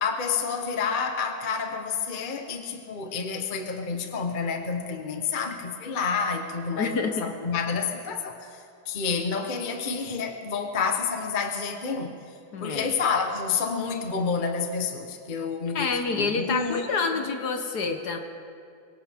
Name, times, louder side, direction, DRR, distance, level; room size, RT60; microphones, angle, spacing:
voice 1, 0.0-8.5 8.9-12.1 12.6-17.3, left 5 dB, 35° left, 5 dB, 0.9 m, -29 dB
voice 2, 6.8-7.2 12.5-12.9 15.7-18.2, left 4 dB, 55° left, 5 dB, 1.4 m, -28 dB
24.0 x 17.0 x 3.6 m, 2.4 s
omnidirectional pair, 2.2 m